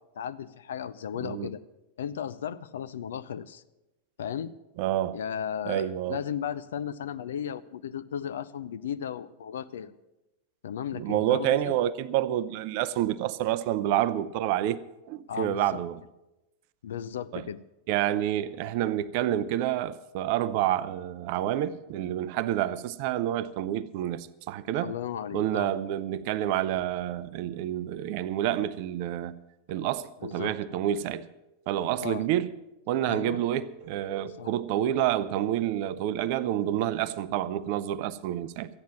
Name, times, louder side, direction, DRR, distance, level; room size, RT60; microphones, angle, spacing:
voice 1, 0.1-1.6 2.0-3.6 4.2-4.5 5.1-9.9 10.6-11.7 15.3-15.6 16.8-17.6 24.8-25.7 30.2-30.5 32.0-32.3 33.1-33.4 34.4-34.5, left 8 dB, 60° left, 0.5 m, -35 dB
voice 2, 4.8-5.2 5.7-6.2 10.9-14.8 15.1-16.0 17.3-17.4 17.9-24.9 25.3-29.4 29.7-31.3 31.7-32.5 32.9-38.7, right 12 dB, 45° right, 0.6 m, -28 dB
13.5 x 9.3 x 7.4 m
figure-of-eight pair, 90°, 0 cm